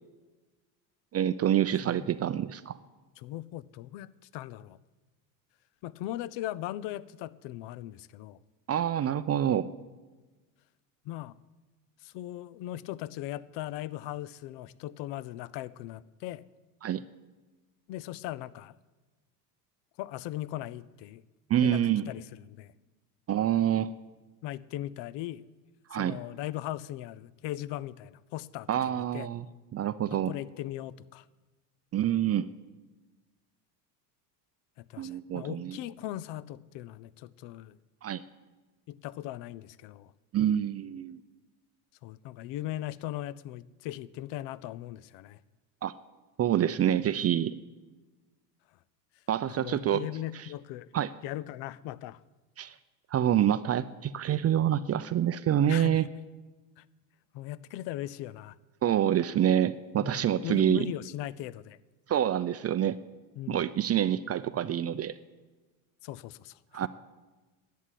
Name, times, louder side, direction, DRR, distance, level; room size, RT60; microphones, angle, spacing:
voice 1, 1.1-2.8 8.7-9.7 16.8-17.0 21.5-22.1 23.3-23.9 25.9-26.2 28.7-29.4 29.7-30.3 31.9-32.5 35.0-35.8 38.0-38.2 40.3-41.2 45.8-45.9 46.4-47.6 49.3-50.1 50.9-51.1 52.6-52.7 53.1-56.1 58.8-60.9 62.1-63.0 63.5-65.1 66.7-66.9, right 10 dB, 30° right, 13 dB, 0.5 m, -27 dB
voice 2, 3.2-4.8 5.8-8.4 11.0-11.3 12.0-16.4 17.9-18.7 20.0-21.2 21.6-21.8 22.1-22.7 24.4-25.4 25.9-28.7 29.1-29.3 30.3-31.2 34.8-37.8 38.9-40.1 42.0-45.4 49.5-50.9 51.2-52.2 55.7-56.0 56.8-56.9 57.3-58.6 60.0-61.8 63.4-63.6 66.0-66.9, left 14 dB, 60° left, 19 dB, 0.7 m, -39 dB
11.0 x 8.4 x 10.0 m, 1.2 s
hypercardioid pair, 85°, 49 cm